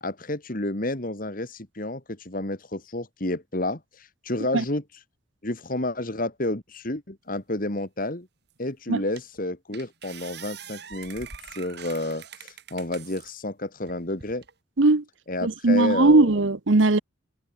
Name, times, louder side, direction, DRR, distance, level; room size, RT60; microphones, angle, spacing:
voice 1, 0.0-4.8 5.4-8.3 8.6-14.4 15.3-16.3, left 1 dB, 45° left, 2.2 m, -30 dB
sound 1, 8.5-8.6 9.2-9.4 9.7-13.3 13.9-14.5, right 7 dB, 55° right, 5.8 m, -44 dB
voice 2, 15.4-17.0, right 2 dB, 70° right, 1.0 m, -19 dB
head